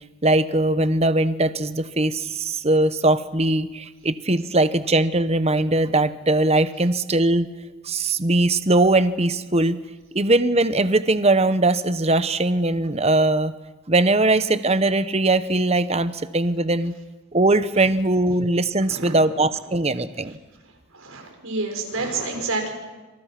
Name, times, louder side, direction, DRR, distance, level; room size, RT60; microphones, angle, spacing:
voice 1, 0.2-7.5 7.8-9.8 10.1-13.5 13.9-16.9 17.3-20.4, right 2 dB, 30° right, 12 dB, 1.0 m, -20 dB
voice 2, 20.9-22.7, right 3 dB, 70° right, 3 dB, 5.6 m, -28 dB
28.0 x 27.0 x 6.0 m, 1.2 s
head